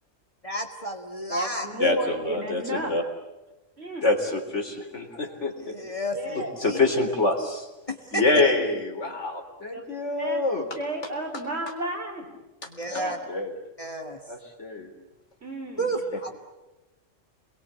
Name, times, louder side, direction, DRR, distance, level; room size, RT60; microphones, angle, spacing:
voice 1, 0.4-1.7 5.6-6.8 7.9-8.2 12.8-13.2 13.8-14.2 15.8-16.3, right 1 dB, 25° left, 3 dB, 2.2 m, -31 dB
voice 2, 1.3-2.9 3.8-4.0 6.1-6.6 9.7-9.8 10.2-10.4 10.8-12.3 12.6-13.2 15.4-15.9, equal, 55° right, 2 dB, 4.8 m, -32 dB
voice 3, 1.8-3.0 4.0-5.8 6.4-7.7 8.1-10.6 12.9-13.0 13.3-13.5 14.3-14.9, left 2 dB, 65° left, 3 dB, 4.0 m, -26 dB
29.5 x 22.0 x 8.6 m, 1.0 s
omnidirectional pair, 1.3 m